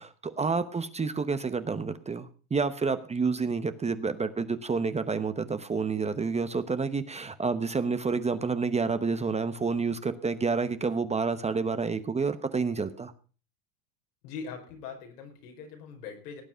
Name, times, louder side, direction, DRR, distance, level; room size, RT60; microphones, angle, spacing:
voice 1, 0.0-13.1, right 4 dB, 15° right, 11 dB, 0.9 m, -29 dB
voice 2, 14.2-16.4, left 6 dB, 85° left, 2 dB, 5.5 m, -41 dB
17.5 x 9.0 x 5.6 m, 0.39 s
supercardioid pair, 120°, 46 cm